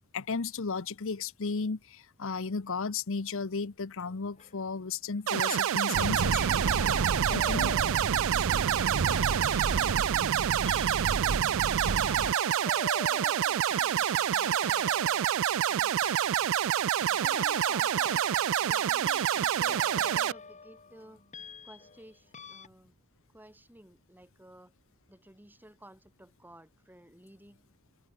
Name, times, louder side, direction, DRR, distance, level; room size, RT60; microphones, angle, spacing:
voice 1, 0.1-6.6 7.3-7.7, left 4 dB, 60° left, 0.8 m, -34 dB
sound 1, 4.1-4.6 5.4-6.0 6.3-22.1 22.3-22.7, left 5 dB, 30° left, 2.0 m, -44 dB
sound 2, 5.3-20.3, right 10 dB, 60° right, 0.4 m, -27 dB
sound 3, 5.9-12.3, right 4 dB, 80° right, 0.7 m, -32 dB
voice 2, 13.1-15.2 15.7-16.0 16.3-16.4 17.0-18.3 18.6-21.2 21.6-22.9 23.3-24.7 25.1-27.7, right 1 dB, 10° right, 2.0 m, -54 dB
open air
head